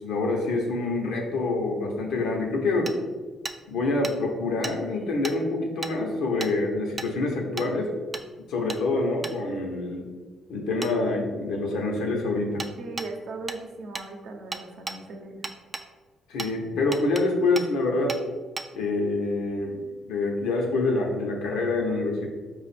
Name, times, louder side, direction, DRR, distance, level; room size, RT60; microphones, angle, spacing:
voice 1, 0.0-2.9 3.7-7.9 8.4-10.0 10.5-12.7 16.3-18.2 18.7-22.3, left 2 dB, 85° left, 1 dB, 0.8 m, -26 dB
Hammer, 2.9-3.0 3.5-3.6 4.0-4.2 4.6-4.8 5.2-5.4 5.8-5.9 6.4-6.5 7.0-7.1 7.6-7.7 8.1-8.3 8.7-8.8 9.2-9.4 10.8-10.9 12.6-12.7 13.0-13.1 13.5-13.6 14.0-14.1 14.5-15.0 15.4-15.9 16.4-16.5 16.9-17.3 17.6-17.7 18.1-18.2 18.6-18.7, right 3 dB, 25° right, 0.3 m, -34 dB
voice 2, 12.8-15.4, right 3 dB, 70° right, 3 dB, 0.7 m, -38 dB
4.9 x 2.4 x 4.2 m, 1.4 s
cardioid pair, 90°, 0 cm